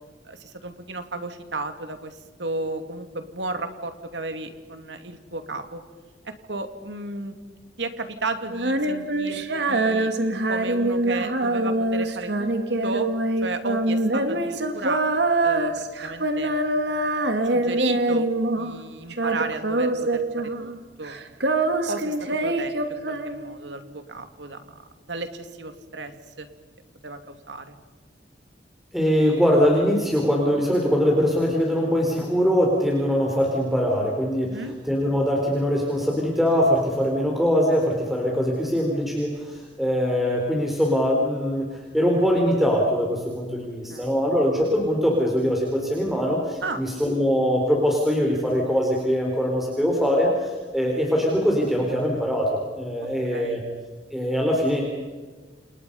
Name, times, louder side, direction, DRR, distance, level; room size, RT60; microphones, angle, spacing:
voice 1, 0.2-5.8 6.5-7.3 7.8-10.1 10.5-12.5 12.8-13.1 13.4-15.0 15.4-16.5 17.4-20.7 21.0-21.1 21.9-24.6 25.1-26.1 26.4-26.5 27.0-27.7 34.4-34.7 43.9-44.2 46.6-46.8 53.3-53.6, right 2 dB, 90° right, 7 dB, 2.7 m, -33 dB
Female singing, 8.5-18.8 19.1-20.8 21.0-23.7, right 2 dB, 70° right, 2.0 m, -24 dB
voice 2, 28.9-41.7 41.9-53.6 54.1-54.8, equal, ahead, -1 dB, 4.1 m, -22 dB
29.5 x 29.0 x 5.5 m, 1.4 s
head